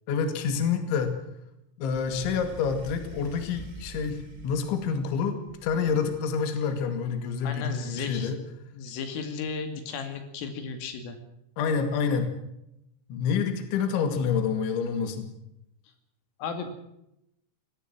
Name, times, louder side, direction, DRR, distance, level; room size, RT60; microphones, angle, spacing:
voice 1, 0.1-1.1 1.8-8.4 11.6-12.3 13.1-15.3, left 6 dB, 70° left, 7 dB, 4.5 m, -28 dB
Deep Monster Growl, 1.9-4.9 5.5-6.4, right 1 dB, 70° right, 0.4 m, -45 dB
voice 2, 7.4-8.3 8.7-11.2 16.4-16.7, left 5 dB, 85° left, 7 dB, 5.0 m, -34 dB
24.0 x 18.5 x 6.1 m, 0.82 s
omnidirectional pair, 5.7 m